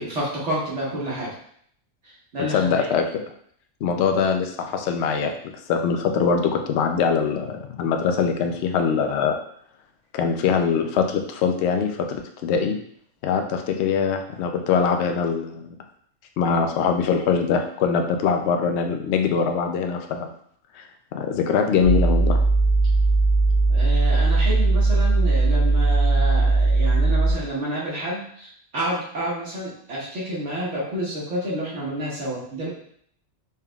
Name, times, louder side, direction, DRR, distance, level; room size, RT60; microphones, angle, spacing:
voice 1, 0.0-1.3 2.0-2.9 23.7-32.7, right 1 dB, 60° right, -6 dB, 1.4 m, -29 dB
voice 2, 2.5-3.2 3.8-5.3 5.7-9.4 10.1-12.8 13.2-15.7 16.4-20.3 20.8-20.9 21.1-22.4, left 6 dB, 65° left, 5 dB, 0.7 m, -22 dB
sound 1, 21.8-27.3, right 3 dB, 40° right, 0.5 m, -19 dB
4.2 x 3.6 x 2.3 m, 0.63 s
omnidirectional pair, 1.4 m